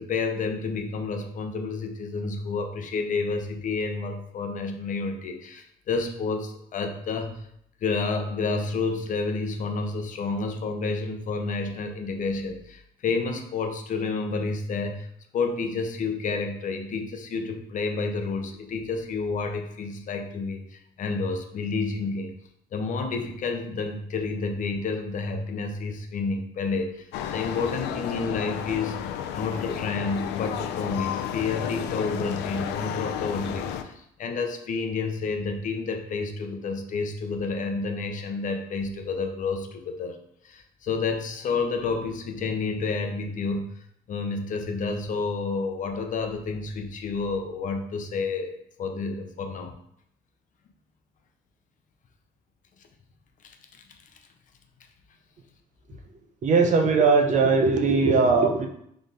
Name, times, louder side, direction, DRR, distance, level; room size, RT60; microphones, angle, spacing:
voice 1, 0.0-7.4 7.8-15.1 15.3-22.3 22.7-27.1 27.3-29.0 29.3-40.2 40.4-43.7 44.1-48.5 48.8-49.7 53.4-53.6, left 4 dB, 50° left, 5 dB, 0.7 m, -30 dB
sound 1, 27.1-33.8, left 9 dB, 85° left, 0.4 m, -32 dB
voice 2, 56.4-58.7, right 4 dB, 45° right, 4 dB, 0.7 m, -20 dB
4.0 x 3.4 x 3.9 m, 0.71 s
cardioid pair, 110°, 17 cm